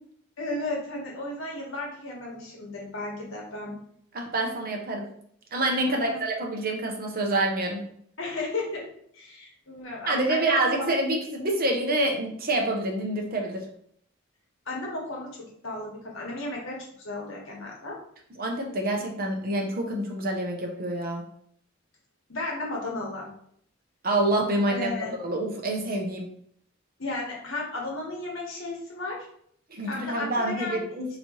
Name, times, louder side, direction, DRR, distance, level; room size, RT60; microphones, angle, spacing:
voice 1, 0.4-3.7 5.9-6.2 8.2-8.9 9.1-10.7 14.7-18.0 22.3-23.3 24.7-25.1 27.0-29.3 29.8-31.0, left 2 dB, 65° left, -2 dB, 1.2 m, -34 dB
voice 2, 4.1-5.1 5.5-7.8 10.1-13.6 18.4-21.2 24.0-26.3 29.7-31.1, right 1 dB, 45° right, 1 dB, 0.8 m, -27 dB
4.0 x 3.0 x 3.0 m, 0.66 s
head